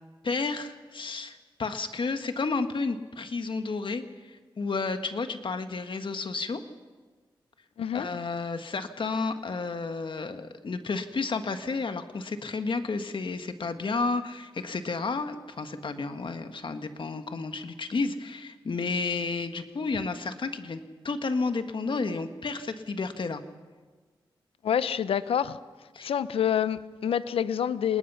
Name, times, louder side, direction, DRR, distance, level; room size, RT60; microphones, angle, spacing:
voice 1, 0.2-6.6 7.9-23.4 25.9-26.1, left 4 dB, 60° left, 8 dB, 1.8 m, -31 dB
voice 2, 24.6-25.6 26.0-28.0, left 9 dB, 90° left, 15 dB, 0.7 m, -27 dB
28.0 x 20.0 x 5.7 m, 1.4 s
cardioid pair, 45°, 9 cm